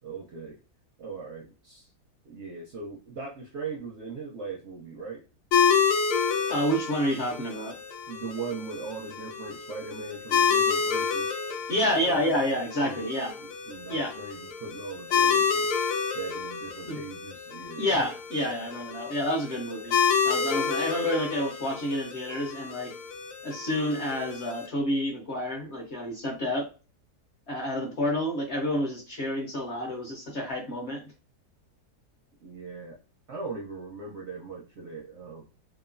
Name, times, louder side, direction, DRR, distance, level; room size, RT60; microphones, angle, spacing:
voice 1, 0.0-0.6 1.0-1.9 2.2-5.2 8.1-11.3 12.0-12.4 12.8-13.1 13.4-15.7 16.1-17.9 32.4-33.0 33.3-35.5, right 4 dB, 65° right, -1 dB, 0.7 m, -39 dB
sound 1, 5.5-24.7, left 6 dB, 75° left, 1.1 m, -29 dB
voice 2, 6.5-7.7 11.7-13.3 13.9-14.1 16.9-17.0 17.8-20.0 20.2-22.9 23.4-26.7 27.5-31.0, equal, 55° left, -1 dB, 0.8 m, -29 dB
2.9 x 2.4 x 2.5 m, 0.33 s
omnidirectional pair, 1.7 m